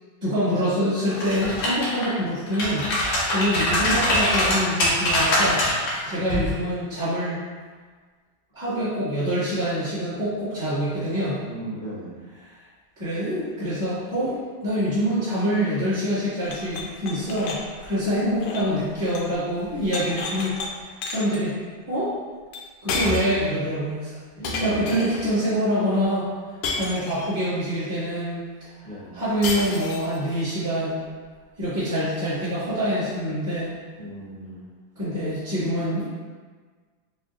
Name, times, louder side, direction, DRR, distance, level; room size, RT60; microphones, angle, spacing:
voice 1, 0.2-2.8 3.2-5.6 6.0-7.4 8.5-11.4 13.0-21.5 21.9-22.1 22.8-24.2 24.6-26.3 26.8-28.4 28.8-31.0 31.6-33.7 34.9-36.0, equal, 20° right, -14 dB, 1.0 m, -25 dB
sound 1, 1.1-2.1 2.5-5.9 6.3-6.5, left 1 dB, 90° left, 1.8 m, -23 dB
voice 2, 11.4-12.2 24.4-25.0 28.8-29.1 34.0-34.6, right 1 dB, 45° left, -11 dB, 0.6 m, -36 dB
sound 2, 16.4-19.3 19.6-20.7 21.0-21.4 22.5-22.6 22.9-23.5 24.4-25.3 26.6-27.4 29.4-30.2, left 3 dB, 75° left, 1.2 m, -31 dB
4.5 x 2.5 x 2.4 m, 1.5 s
omnidirectional pair, 2.4 m